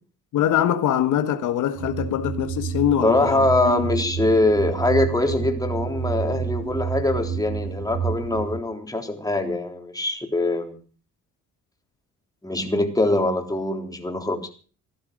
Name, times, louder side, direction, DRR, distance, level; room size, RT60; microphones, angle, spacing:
voice 1, 0.3-3.9, left 10 dB, 80° left, 1.6 m, -23 dB
sound 1, 1.7-8.6, right 6 dB, 75° right, 5.7 m, -29 dB
voice 2, 3.0-10.8 12.4-14.5, left 2 dB, 10° left, 3.6 m, -23 dB
15.5 x 12.0 x 6.4 m
cardioid pair, 90°, 30 cm